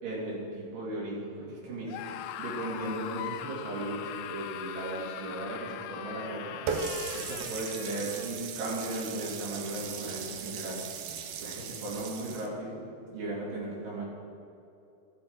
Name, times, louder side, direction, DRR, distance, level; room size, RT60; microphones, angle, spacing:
voice 1, 0.0-6.6 7.1-10.8 11.4-12.8 13.1-14.1, right 2 dB, 65° right, -6 dB, 4.2 m, -36 dB
Screaming, 1.9-8.3, left 11 dB, 85° left, 1.8 m, -40 dB
Water tap faucet, 6.7-12.5, right 6 dB, 80° right, 1.8 m, -37 dB
13.0 x 7.8 x 5.1 m, 2.7 s
omnidirectional pair, 4.3 m